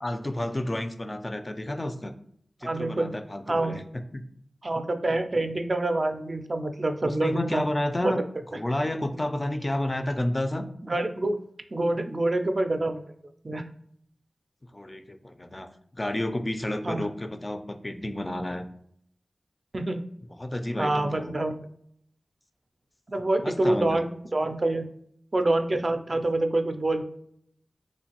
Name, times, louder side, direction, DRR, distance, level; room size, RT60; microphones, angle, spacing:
voice 1, 0.0-2.1 2.6-3.8 4.1-4.2 7.0-8.2 8.5-10.6 14.7-15.7 15.9-18.6 20.4-21.4 23.4-24.0, left 1 dB, 30° left, 8 dB, 0.3 m, -30 dB
voice 2, 2.6-3.1 3.5-3.8 4.6-7.6 8.0-8.1 10.8-11.4 11.7-13.0 13.4-13.6 16.8-17.0 19.7-20.0 20.8-21.6 23.1-24.9 25.3-27.0, right 2 dB, 45° right, 7 dB, 0.3 m, -26 dB
3.1 x 2.5 x 2.8 m, 0.68 s
cardioid pair, 50°, 0 cm